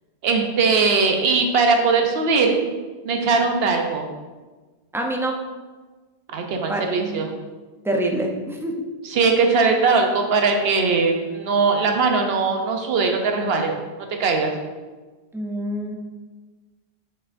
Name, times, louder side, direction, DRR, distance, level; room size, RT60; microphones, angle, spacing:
voice 1, 0.2-2.6 3.0-4.1 6.3-7.3 9.0-13.8 14.2-14.6, right 4 dB, 70° right, 3 dB, 1.0 m, -20 dB
voice 2, 4.9-5.3 6.7-7.3 7.8-8.7 15.3-16.0, right 1 dB, 5° right, 1 dB, 0.4 m, -26 dB
6.6 x 5.6 x 2.5 m, 1.3 s
omnidirectional pair, 1.1 m